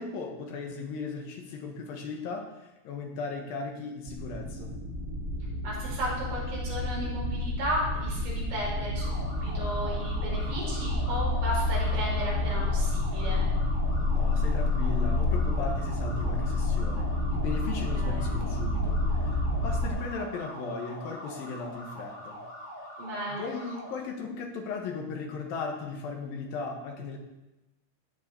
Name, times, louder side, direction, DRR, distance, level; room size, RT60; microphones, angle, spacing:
voice 1, 0.0-4.7 14.1-22.4 23.3-27.2, left 4 dB, 65° left, 2 dB, 2.4 m, -37 dB
sound 1, 4.1-19.9, left 2 dB, 10° right, 1.1 m, -29 dB
voice 2, 5.6-9.1 9.3-13.4 17.9-18.3 23.0-23.5, equal, 60° right, -6 dB, 7.4 m, -34 dB
sound 2, 9.0-23.9, equal, 15° left, 4.7 m, -43 dB
16.5 x 7.7 x 4.4 m, 1.0 s
omnidirectional pair, 5.6 m